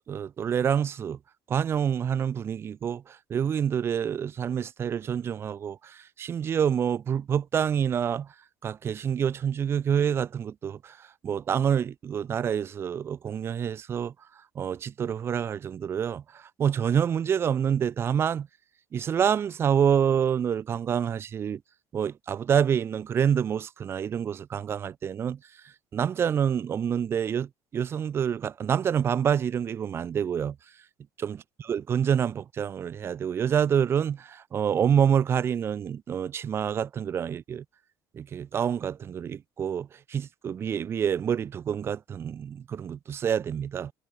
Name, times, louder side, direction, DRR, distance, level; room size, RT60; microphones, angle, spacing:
voice 1, 0.1-1.2 1.5-8.3 8.6-14.1 14.6-18.5 18.9-21.6 21.9-25.4 25.9-30.6 31.2-37.6 38.1-43.9, right 8 dB, 30° right, 0.6 m, -27 dB
cardioid pair, 155°, 8 cm